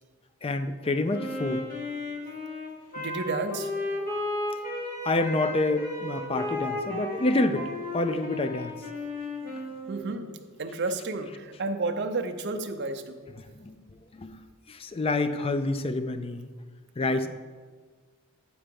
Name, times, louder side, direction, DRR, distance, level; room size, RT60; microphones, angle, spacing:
voice 1, 0.4-1.7 5.0-8.8 13.5-14.4 14.7-16.5 17.0-17.3, left 2 dB, 25° left, 10 dB, 0.4 m, -28 dB
Wind instrument woodwind instrument, 1.1-10.1, left 2 dB, 45° left, 2.1 m, -34 dB
voice 2, 3.0-3.7 9.9-13.2 17.1-17.3, right 3 dB, 55° right, 7 dB, 0.6 m, -32 dB
8.7 x 4.6 x 5.2 m, 1.5 s
head